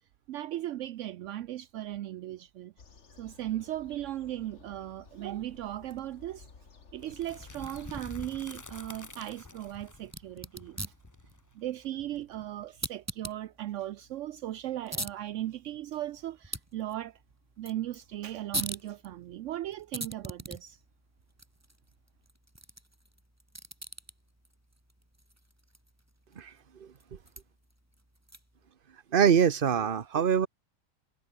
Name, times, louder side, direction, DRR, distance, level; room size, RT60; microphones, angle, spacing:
voice 1, 0.3-2.7 3.2-6.5 6.9-10.9 11.5-17.2 17.6-20.8, right 13 dB, 70° right, 0.9 m, -37 dB
sound 1, 2.8-8.0, left 5 dB, 60° left, 2.2 m, -55 dB
sound 2, 7.0-12.8, left 3 dB, 15° left, 0.7 m, -48 dB
sound 3, 10.0-28.7, right 1 dB, 10° right, 3.3 m, -44 dB
voice 2, 26.4-27.2 29.1-30.5, right 7 dB, 45° right, 1.2 m, -25 dB
omnidirectional pair, 1.4 m